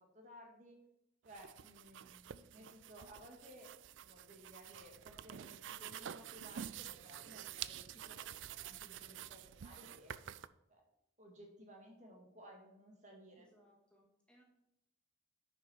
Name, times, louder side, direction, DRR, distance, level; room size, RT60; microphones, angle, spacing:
voice 1, 0.1-0.8 1.2-3.7 4.0-10.1 10.7-10.8 11.2-13.4, equal, 40° right, 0 dB, 2.1 m, -58 dB
sound 1, 1.3-10.5, right 10 dB, 75° right, 0.4 m, -49 dB
voice 2, 13.3-14.4, equal, 5° left, -3 dB, 2.1 m, -69 dB
10.5 x 6.2 x 4.6 m, 0.86 s
head